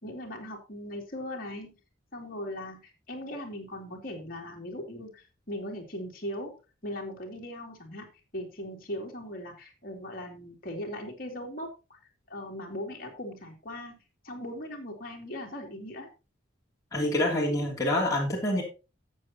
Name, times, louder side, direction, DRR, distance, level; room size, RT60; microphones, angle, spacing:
voice 1, 0.0-1.7 2.1-6.5 6.8-8.1 8.3-12.0 12.3-14.0 14.2-16.1, left 1 dB, 45° left, -1 dB, 2.7 m, -39 dB
voice 2, 16.9-18.6, left 1 dB, 15° left, -3 dB, 2.8 m, -26 dB
13.5 x 7.5 x 2.9 m, 0.30 s
head